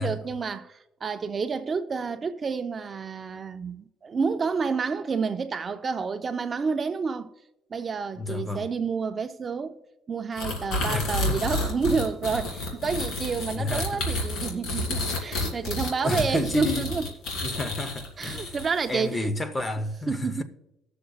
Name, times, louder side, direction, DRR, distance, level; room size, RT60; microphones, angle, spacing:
voice 1, 0.0-7.3 7.7-9.8 10.1-17.1 18.2-19.3 20.1-20.4, right 5 dB, 30° right, 0.3 m, -29 dB
voice 2, 8.2-8.7 10.9-11.6 13.6-14.0 16.0-16.9 17.4-18.6 18.9-20.4, left 2 dB, 15° left, 0.7 m, -31 dB
sound 1, 10.4-18.9, left 2 dB, 70° left, 2.7 m, -30 dB
19.5 x 6.7 x 2.3 m
cardioid pair, 135°, 0 cm